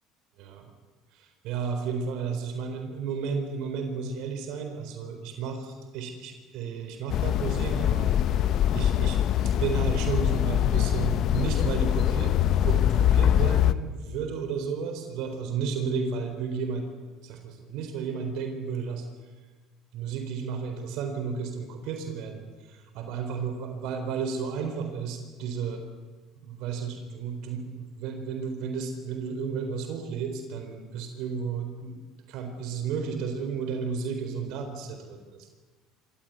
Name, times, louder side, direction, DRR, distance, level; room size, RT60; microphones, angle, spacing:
voice 1, 1.1-8.4 8.7-9.2 9.4-16.9 17.2-19.1 19.9-25.8 26.3-32.0 32.3-35.5, right 6 dB, 70° right, 6 dB, 4.0 m, -33 dB
sound 1, 7.1-13.7, left 11 dB, 55° left, 1.0 m, -23 dB
24.5 x 17.5 x 9.6 m, 1.3 s
supercardioid pair, 95°, 0 cm